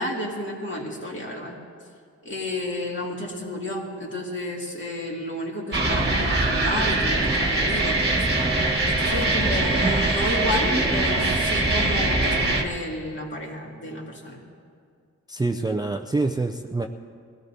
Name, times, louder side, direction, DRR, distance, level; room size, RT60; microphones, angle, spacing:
voice 1, 0.0-1.6 2.2-8.3 8.8-14.4, left 1 dB, 40° left, -2 dB, 2.4 m, -31 dB
sound 1, 5.7-12.6, right 2 dB, 35° right, 1.3 m, -22 dB
voice 2, 15.3-16.9, right 3 dB, 15° right, 3 dB, 0.4 m, -26 dB
23.0 x 17.0 x 2.7 m, 2.2 s
wide cardioid pair, 125°, 30 cm